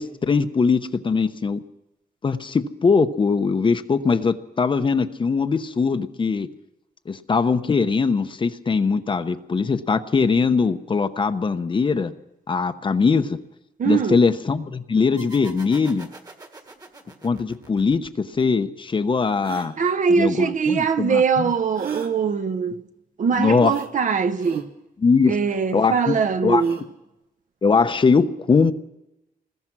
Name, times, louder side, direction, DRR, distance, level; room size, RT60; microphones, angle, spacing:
voice 1, 0.0-1.6 2.2-6.5 7.1-12.1 12.5-13.4 13.9-16.1 17.2-19.8 20.2-21.5 23.4-23.7 25.0-25.4 25.7-26.1 26.4-26.6 27.6-28.7, left 5 dB, 35° left, 0.9 m, -21 dB
voice 2, 13.8-14.2 19.8-22.8 23.2-24.7 25.3-26.8, right 6 dB, 55° right, 1.1 m, -22 dB
sound 1, 15.2-18.5, right 2 dB, 25° right, 1.7 m, -44 dB
sound 2, 18.4-18.5 19.4-19.7 21.7-22.1 23.7-23.9 24.4-24.6 26.5-26.9, right 7 dB, 90° right, 2.6 m, -35 dB
25.5 x 20.5 x 6.1 m
wide cardioid pair, 155°, 15 cm